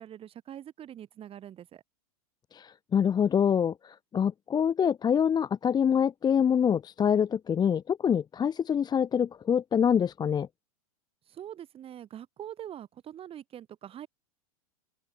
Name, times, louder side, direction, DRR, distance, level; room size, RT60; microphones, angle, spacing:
voice 1, 0.0-1.8 11.3-14.1, right 10 dB, 30° right, 4.1 m, -44 dB
voice 2, 2.5-10.5, left 8 dB, 20° left, 1.1 m, -25 dB
open air
hypercardioid pair, 105°, 19 cm